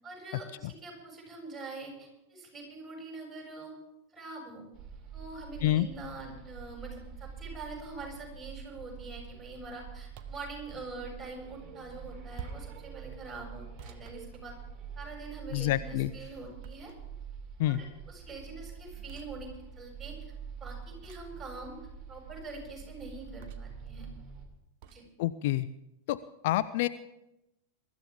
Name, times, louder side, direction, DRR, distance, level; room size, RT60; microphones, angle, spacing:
voice 1, 0.0-3.7 4.1-4.6 5.1-14.6 15.0-16.9 17.6-19.5 19.8-20.2 20.5-21.8 22.1-24.1 24.9-25.0, right 3 dB, 10° right, -1 dB, 7.3 m, -44 dB
sound 1, 4.7-24.5, right 6 dB, 25° right, 2.8 m, -46 dB
sound 2, 10.2-10.5 12.3-12.8 13.8-15.0 16.6-17.2 19.1-19.3 21.0-21.4 23.4-23.8 24.8-25.0, right 7 dB, 45° right, 1.2 m, -47 dB
voice 2, 15.5-16.1 17.6-17.8 25.2-25.7 26.1-26.2 26.4-26.9, left 15 dB, 50° left, 13 dB, 0.5 m, -27 dB
23.0 x 13.0 x 3.7 m, 0.89 s
figure-of-eight pair, 90°, 0 cm